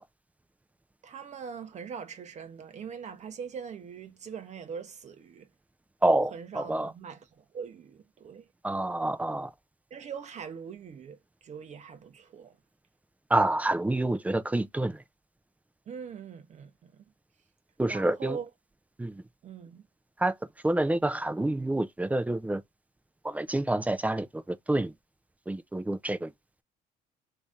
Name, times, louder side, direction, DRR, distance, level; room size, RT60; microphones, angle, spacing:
voice 1, 1.0-5.5 6.3-8.5 9.9-12.6 15.9-17.0 17.8-18.5 19.4-19.8, right 6 dB, 45° right, 0.7 m, -42 dB
voice 2, 6.0-6.9 8.6-9.5 13.3-15.0 17.8-18.4 19.0-19.2 20.2-20.3 20.6-22.6 23.2-24.9 25.5-26.3, right 1 dB, 10° right, 0.4 m, -27 dB
3.1 x 2.7 x 3.6 m
cardioid pair, 110°, 17 cm